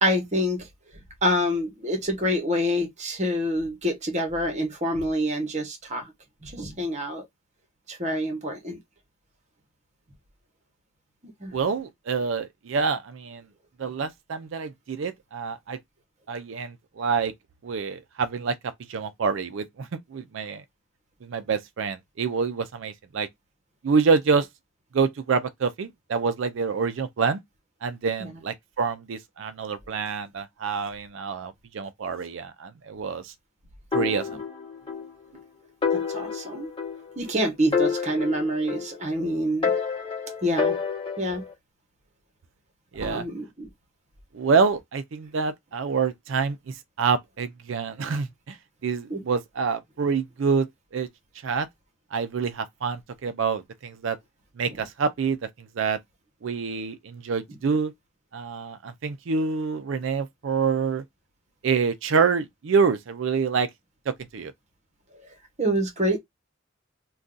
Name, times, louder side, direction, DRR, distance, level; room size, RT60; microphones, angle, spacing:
voice 1, 0.0-0.7 1.2-6.1 6.4-7.3 7.9-8.8 11.2-11.5 28.2-28.3 34.0-34.4 35.9-36.7 37.2-39.7 40.4-40.8 41.2-41.5 43.0-43.7 49.1-49.2 54.7-54.8 65.6-66.2, equal, 35° right, 1.0 m, -27 dB
voice 2, 11.5-13.4 13.8-15.8 16.3-17.3 17.6-18.6 18.9-20.6 21.2-23.3 23.8-24.5 24.9-27.4 27.8-33.3 33.9-34.4 42.9-43.2 44.3-48.6 48.8-50.7 50.9-51.1 51.4-51.7 52.1-54.2 54.6-55.4 55.8-56.0 56.4-57.9 58.3-61.0 61.6-63.7 64.1-64.5, right 5 dB, 65° right, 0.4 m, -27 dB
sound 1, 33.9-35.1 35.4-35.5 35.8-37.3 37.7-39.2 39.6-41.5, left 5 dB, 25° left, 1.0 m, -28 dB
2.6 x 2.3 x 3.6 m
head